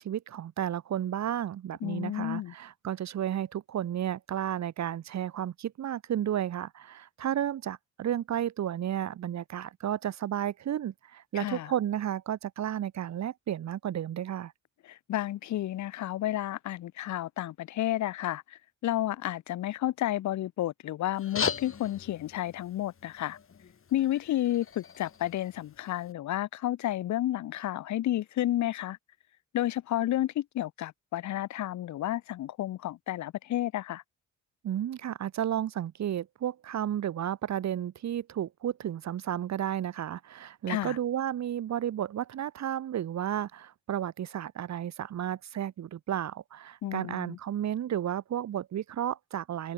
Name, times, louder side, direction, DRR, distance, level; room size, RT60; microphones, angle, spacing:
voice 1, 0.0-14.5 34.6-49.7, right 10 dB, 65° right, 2.6 m, -32 dB
voice 2, 1.8-2.5 11.3-11.7 14.8-23.4 23.9-29.0 29.5-34.0 40.7-41.0 46.8-47.4, left 13 dB, 70° left, 1.1 m, -31 dB
sound 1, 21.1-26.1, left 6 dB, 45° left, 7.9 m, -38 dB
cardioid pair, 90°, 30 cm